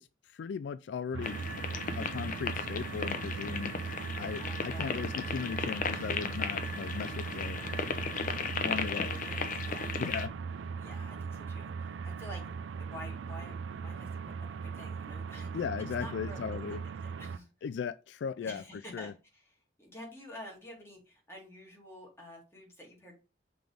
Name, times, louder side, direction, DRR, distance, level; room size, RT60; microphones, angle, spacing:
voice 1, 0.0-1.4 2.0-3.7 4.2-7.6 8.6-9.1 10.0-10.3 15.5-16.8 17.6-18.6 18.9-19.1, left 6 dB, 70° left, 0.3 m, -37 dB
sound 1, 1.1-17.4, right 5 dB, 85° right, 0.4 m, -39 dB
sound 2, 1.2-10.3, left 5 dB, 45° left, 0.8 m, -36 dB
voice 2, 3.8-4.9 8.7-9.9 10.8-12.4 12.8-13.6 13.8-15.6 16.0-16.4 16.7-16.8 17.0-17.5 18.4-23.2, equal, 15° left, 2.5 m, -49 dB
5.9 x 3.5 x 4.9 m
head